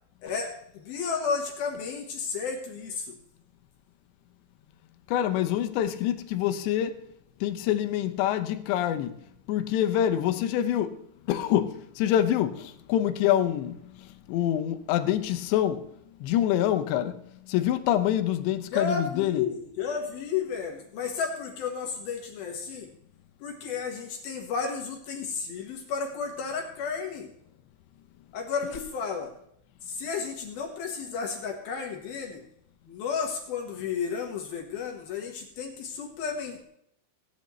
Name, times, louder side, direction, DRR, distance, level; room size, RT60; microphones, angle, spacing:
voice 1, 0.2-3.2 18.7-22.9 23.4-27.3 28.3-29.3 29.8-32.4 32.8-36.6, left 5 dB, 65° left, 2.9 m, -32 dB
voice 2, 5.1-7.0 7.4-11.0 11.3-15.9 16.2-17.2 17.5-19.4, left 11 dB, 80° left, 3.0 m, -26 dB
17.0 x 10.0 x 3.1 m
omnidirectional pair, 5.2 m